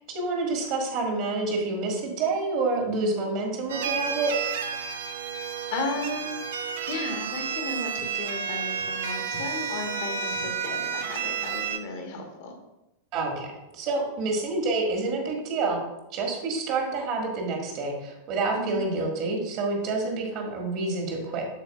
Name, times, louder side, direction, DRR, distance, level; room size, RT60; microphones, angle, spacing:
voice 1, 0.1-4.3 13.1-15.8 16.1-21.5, right 3 dB, 40° right, 1 dB, 1.7 m, -28 dB
sound 1, 3.7-11.8, right 6 dB, 60° right, 0.6 m, -31 dB
voice 2, 5.7-6.4 6.8-12.5 18.5-18.8, left 2 dB, 50° left, 3 dB, 1.3 m, -34 dB
12.5 x 4.4 x 2.3 m, 0.94 s
figure-of-eight pair, 90°, 0 cm